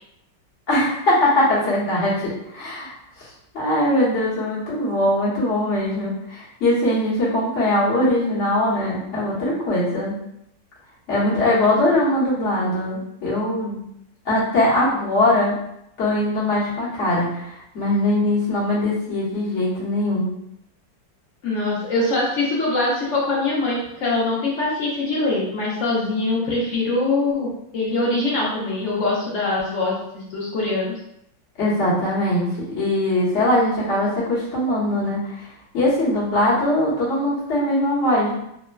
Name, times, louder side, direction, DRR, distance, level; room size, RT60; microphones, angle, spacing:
voice 1, 0.7-2.9 3.5-10.1 11.1-13.8 14.2-15.5 16.0-20.3 31.6-35.5 35.7-38.3, left 1 dB, 45° left, -8 dB, 1.1 m, -21 dB
voice 2, 21.4-30.9, left 2 dB, 75° left, -5 dB, 0.7 m, -23 dB
3.2 x 2.1 x 2.2 m, 0.78 s
omnidirectional pair, 2.0 m